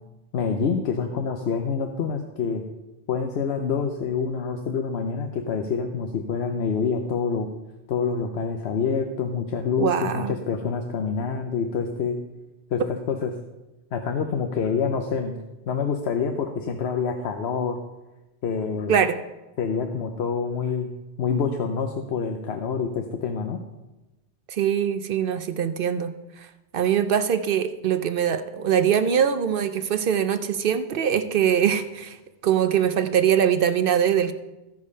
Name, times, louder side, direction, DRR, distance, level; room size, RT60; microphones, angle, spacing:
voice 1, 0.3-2.6 3.1-7.5 7.9-12.2 12.7-13.3 13.9-15.4 15.7-17.8 18.4-19.0 19.6-20.9 21.2-23.6, left 5 dB, 70° left, 5 dB, 1.0 m, -26 dB
voice 2, 9.8-10.4 18.9-19.2 24.5-26.5 26.7-32.2 32.4-34.3, right 8 dB, 60° right, 11 dB, 0.7 m, -22 dB
14.5 x 5.1 x 5.4 m, 1.1 s
omnidirectional pair, 1.2 m